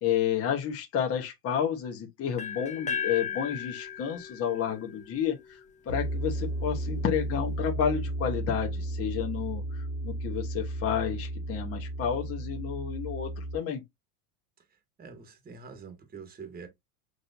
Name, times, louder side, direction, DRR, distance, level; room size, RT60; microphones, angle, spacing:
voice 1, 0.0-5.6 5.9-13.8, left 8 dB, 30° left, 1.1 m, -31 dB
sound 1, 2.4-6.3, left 7 dB, 15° left, 0.8 m, -37 dB
sound 2, 5.9-13.6, right 1 dB, 60° left, 1.6 m, -33 dB
voice 2, 15.0-16.7, right 5 dB, 20° right, 1.4 m, -45 dB
6.5 x 2.7 x 2.7 m
supercardioid pair, 115°, 45 cm